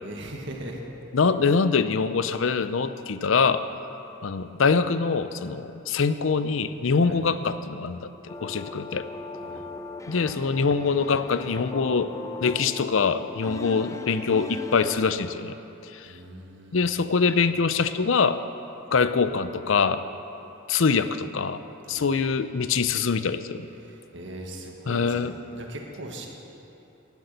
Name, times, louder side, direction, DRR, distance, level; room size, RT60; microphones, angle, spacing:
voice 1, 0.0-0.8 7.0-7.2 9.4-9.6 16.0-16.8 21.9-22.1 23.8-26.3, right 1 dB, 60° right, 1 dB, 1.7 m, -40 dB
voice 2, 1.1-3.6 4.2-9.1 10.1-12.1 12.4-15.6 15.9-16.1 16.7-18.4 18.9-20.0 20.7-21.6 21.9-23.7 24.9-25.3, left 5 dB, 70° left, 12 dB, 0.5 m, -24 dB
sound 1, 8.3-15.1, left 2 dB, 15° left, 0.5 m, -38 dB
12.0 x 12.0 x 6.8 m, 3.0 s
head